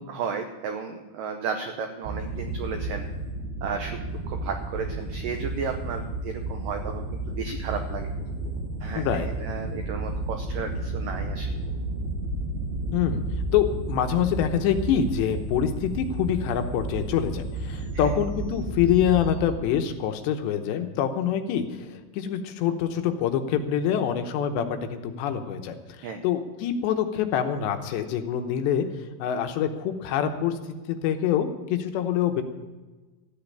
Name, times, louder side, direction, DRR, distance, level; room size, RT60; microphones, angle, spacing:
voice 1, 0.0-3.0 3.6-8.1 8.8-11.5 17.9-18.1 26.0-26.2, right 5 dB, 85° right, 5 dB, 1.9 m, -34 dB
sound 1, 2.0-19.5, right 2 dB, 65° right, 2.9 m, -32 dB
voice 2, 8.9-9.3 12.9-13.2 13.5-30.6 30.9-32.4, left 9 dB, 80° left, 7 dB, 3.1 m, -25 dB
14.0 x 8.6 x 8.6 m, 1.3 s
omnidirectional pair, 5.2 m